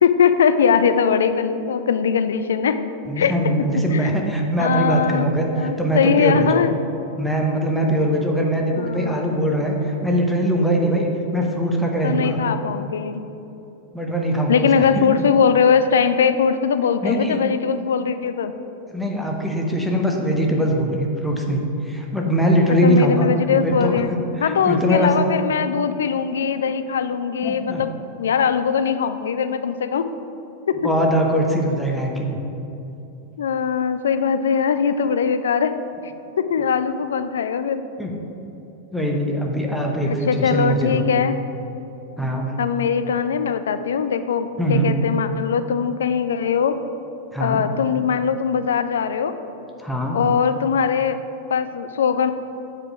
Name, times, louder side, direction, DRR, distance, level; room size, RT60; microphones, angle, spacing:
voice 1, 0.0-2.8 3.2-3.3 3.7-4.2 4.6-5.3 5.6-6.7 8.8-9.3 12.0-13.2 14.5-18.5 22.8-24.1 24.4-27.9 28.2-30.1 30.7-30.9 33.4-35.7 36.0-36.1 36.4-37.8 40.0-41.4 42.6-46.7 47.4-49.3 50.1-51.2 51.5-52.3, left 7 dB, 65° left, 11 dB, 0.3 m, -21 dB
voice 2, 3.1-6.6 7.2-12.4 13.9-15.1 17.0-17.4 18.9-23.3 23.6-24.0 24.4-25.1 27.4-27.8 30.8-32.4 38.0-38.1 38.9-41.1 42.2-42.5 44.6-44.9 47.3-47.6 49.8-50.2, equal, ahead, 0 dB, 0.9 m, -21 dB
7.5 x 4.7 x 4.8 m, 2.9 s
figure-of-eight pair, 90°, 0 cm